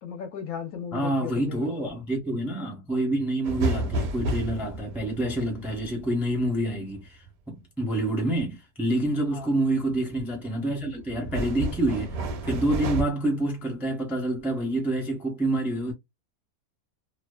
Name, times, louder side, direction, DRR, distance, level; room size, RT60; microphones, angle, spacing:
voice 1, 0.0-1.9 9.3-9.5, left 7 dB, 70° left, 1.0 m, -36 dB
voice 2, 0.9-12.2 12.4-15.9, right 1 dB, ahead, 0.5 m, -27 dB
sound 1, 3.4-7.3 9.8-10.3 10.7-13.0, right 2 dB, 75° right, 1.0 m, -31 dB
2.7 x 2.0 x 2.2 m
omnidirectional pair, 1.6 m